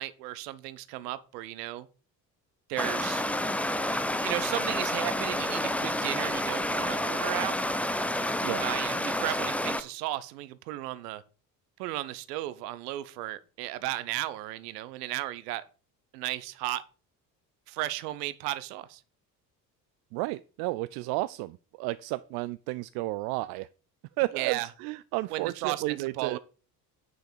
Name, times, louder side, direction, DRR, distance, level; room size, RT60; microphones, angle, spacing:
voice 1, 0.0-1.9 2.7-3.2 4.2-7.6 8.6-11.2 11.8-15.6 16.1-16.8 17.7-19.0 24.3-24.7 25.3-26.4, right 15 dB, 70° right, 0.9 m, -34 dB
Stream, 2.8-9.8, left 1 dB, 5° left, 0.8 m, -29 dB
voice 2, 20.1-23.7 24.2-26.4, right 20 dB, 50° right, 0.5 m, -32 dB
9.4 x 5.8 x 5.0 m
figure-of-eight pair, 55°, 50 cm